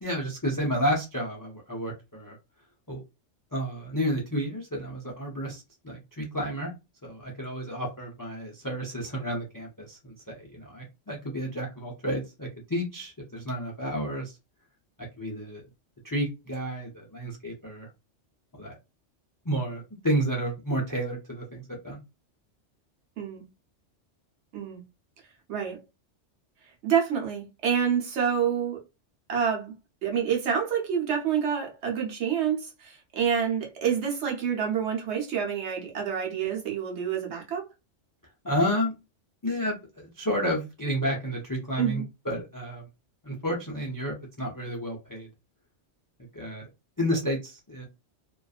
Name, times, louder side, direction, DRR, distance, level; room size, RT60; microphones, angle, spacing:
voice 1, 0.0-2.4 2.9-3.0 3.5-6.7 7.0-14.4 15.2-15.6 16.0-17.9 18.6-18.8 19.4-22.0 38.4-38.9 39.4-42.9 43.2-45.3 46.3-46.6 47.0-47.9, equal, 35° left, 0.3 m, -31 dB
voice 2, 26.8-28.8 29.3-29.7 30.0-37.7 41.8-42.0, right 7 dB, 70° right, 1.0 m, -27 dB
2.5 x 2.3 x 2.3 m
omnidirectional pair, 1.2 m